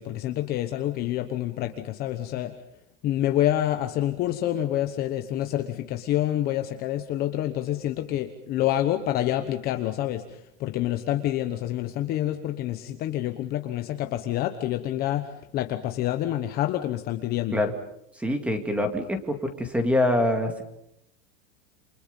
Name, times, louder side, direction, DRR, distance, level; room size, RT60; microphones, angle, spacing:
voice 1, 0.0-2.5 3.0-17.6, left 13 dB, 25° left, 7 dB, 1.2 m, -27 dB
voice 2, 18.2-20.6, left 1 dB, 5° right, 6 dB, 2.4 m, -25 dB
28.5 x 28.0 x 5.4 m, 0.76 s
supercardioid pair, 175°, 35 cm